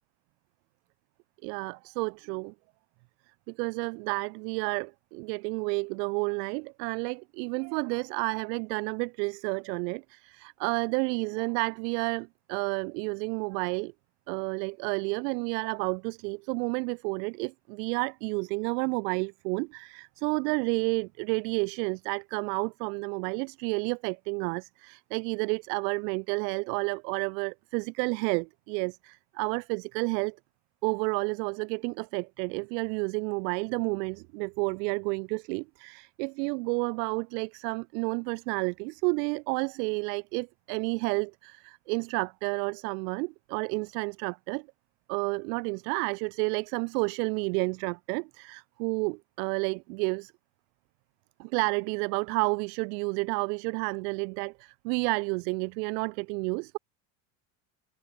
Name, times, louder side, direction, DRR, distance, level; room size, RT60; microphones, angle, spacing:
voice 1, 1.4-2.5 3.5-13.9 14.3-30.4 30.8-44.7 45.1-50.3 51.4-56.8, right 32 dB, 75° right, 3.4 m, -31 dB
supercardioid pair, 95°, 48 cm